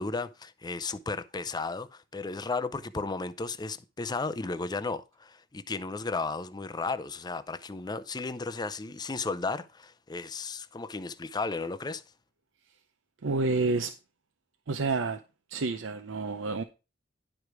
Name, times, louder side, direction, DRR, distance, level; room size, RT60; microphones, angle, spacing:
voice 1, 0.0-12.0, left 3 dB, 20° left, 0.5 m, -34 dB
voice 2, 13.2-13.9 14.7-15.2 15.5-16.6, right 3 dB, 85° right, 0.6 m, -29 dB
11.0 x 5.0 x 4.6 m
head